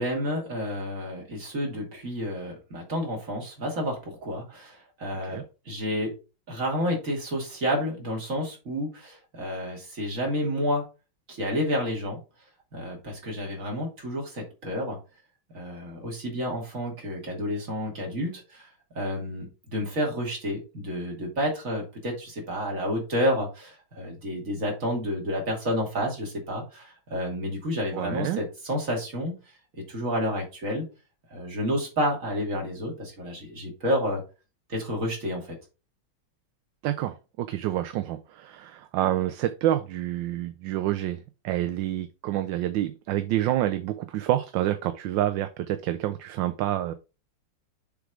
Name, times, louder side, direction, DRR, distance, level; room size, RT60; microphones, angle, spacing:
voice 1, 0.0-6.1 6.5-10.8 11.3-12.2 12.7-15.0 15.5-18.7 18.9-29.3 29.9-30.9 31.3-34.2 34.7-35.5, equal, 40° right, 0 dB, 2.8 m, -30 dB
voice 2, 27.9-28.4 36.8-38.2 38.6-41.2 41.4-46.9, right 13 dB, 75° right, 9 dB, 1.2 m, -27 dB
7.0 x 3.7 x 4.8 m, 0.30 s
omnidirectional pair, 2.3 m